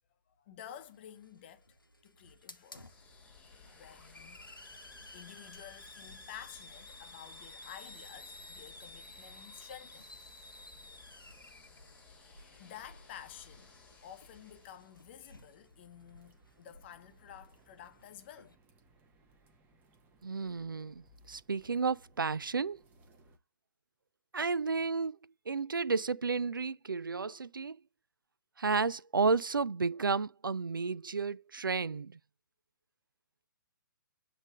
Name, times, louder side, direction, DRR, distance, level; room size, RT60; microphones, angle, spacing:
voice 1, 0.3-1.8 2.0-3.0 3.7-10.1 12.6-18.6, left 10 dB, 30° left, 0.8 m, -51 dB
Hiss, 0.6-18.5, left 2 dB, 85° left, 1.0 m, -54 dB
sound 1, 2.6-15.2, left 4 dB, 10° left, 1.5 m, -59 dB
sound 2, 14.5-23.4, right 1 dB, 15° right, 1.1 m, -65 dB
voice 2, 20.2-22.8 24.3-25.2 25.5-27.8 28.6-32.2, right 4 dB, 75° right, 0.4 m, -32 dB
8.0 x 3.3 x 3.6 m
figure-of-eight pair, 130°, 11 cm